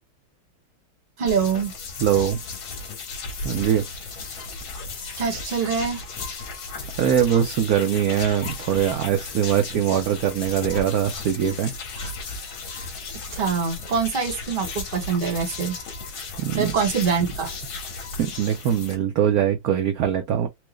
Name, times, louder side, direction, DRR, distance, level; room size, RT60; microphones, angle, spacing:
voice 1, 1.2-1.7 5.2-6.0 12.0-12.1 12.7-12.9 13.3-15.8 16.6-17.5, right 6 dB, 35° right, 0.9 m, -24 dB
sound 1, 1.3-19.0, left 3 dB, 80° left, 2.0 m, -35 dB
voice 2, 2.0-2.4 3.4-3.8 7.0-11.7 16.4-16.7 18.2-20.5, right 9 dB, 70° right, 0.8 m, -22 dB
4.5 x 2.3 x 3.0 m
omnidirectional pair, 2.2 m